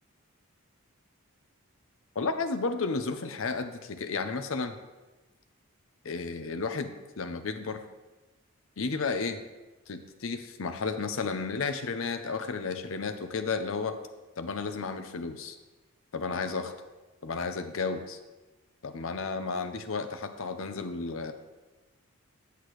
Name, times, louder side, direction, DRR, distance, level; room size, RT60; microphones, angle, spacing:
voice 1, 2.2-4.8 6.0-7.8 8.8-9.4 9.9-14.0 14.4-15.6 16.1-16.7 17.2-18.2 18.8-21.3, left 4 dB, 65° left, 8 dB, 0.6 m, -32 dB
8.4 x 8.0 x 3.1 m, 1.2 s
head